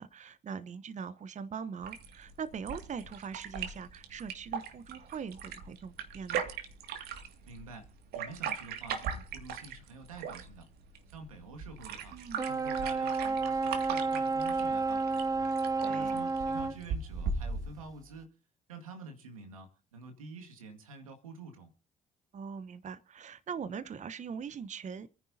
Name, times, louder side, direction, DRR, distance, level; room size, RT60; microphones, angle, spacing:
voice 1, 0.0-6.4 12.1-12.5 15.8-16.2 22.3-25.1, right 6 dB, 45° right, 1.0 m, -41 dB
sound 1, 1.8-17.9, right 6 dB, 70° right, 2.3 m, -40 dB
voice 2, 7.5-10.7 11.1-15.5 15.9-18.3 18.7-21.7, right 3 dB, 90° right, 2.1 m, -48 dB
sound 2, 12.4-16.8, right 4 dB, 20° right, 0.7 m, -31 dB
27.5 x 10.5 x 2.8 m
hypercardioid pair, 50°, 17 cm